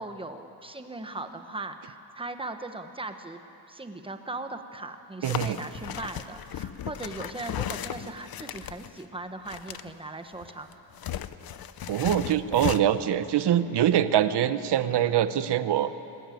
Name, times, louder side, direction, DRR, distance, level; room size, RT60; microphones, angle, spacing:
voice 1, 0.0-3.4 3.7-10.7, right 2 dB, 10° right, 7 dB, 1.0 m, -38 dB
sound 1, 5.2-9.0 9.5-9.9 10.3-12.8, left 10 dB, 50° left, 0.7 m, -35 dB
voice 2, 5.2-5.6 11.9-15.9, right 10 dB, 60° right, 12 dB, 0.9 m, -24 dB
20.5 x 20.0 x 9.2 m, 2.8 s
wide cardioid pair, 180°, 46 cm